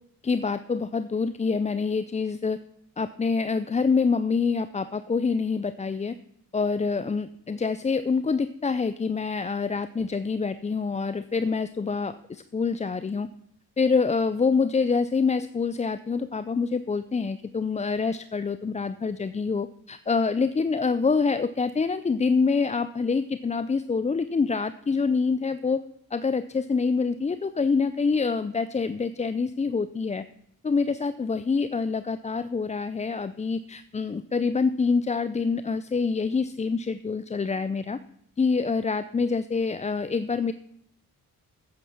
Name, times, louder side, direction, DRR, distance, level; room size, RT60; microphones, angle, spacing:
voice 1, 0.2-2.6 3.0-6.1 6.5-13.3 13.8-25.8 26.1-30.2 30.6-38.0 38.4-40.5, left 4 dB, 20° left, 13 dB, 0.4 m, -26 dB
10.0 x 9.0 x 5.9 m, 0.72 s
cardioid pair, 65°, 38 cm